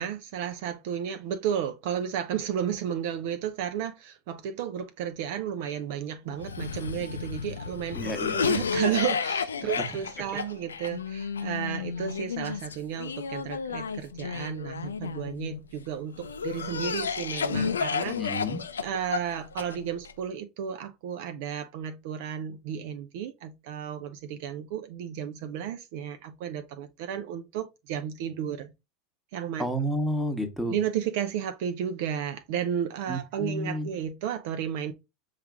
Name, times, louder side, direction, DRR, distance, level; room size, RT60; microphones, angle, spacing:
voice 1, 0.0-18.2 18.8-28.7 29.3-29.7 30.7-34.9, right 9 dB, 60° right, 0.5 m, -33 dB
Cough, 6.4-15.6 16.2-20.1, left 6 dB, 80° left, 0.3 m, -32 dB
voice 2, 7.9-8.3 18.2-18.6 29.6-30.8 33.1-33.9, equal, ahead, 1.1 m, -30 dB
5.7 x 2.5 x 3.2 m
figure-of-eight pair, 80°, 0 cm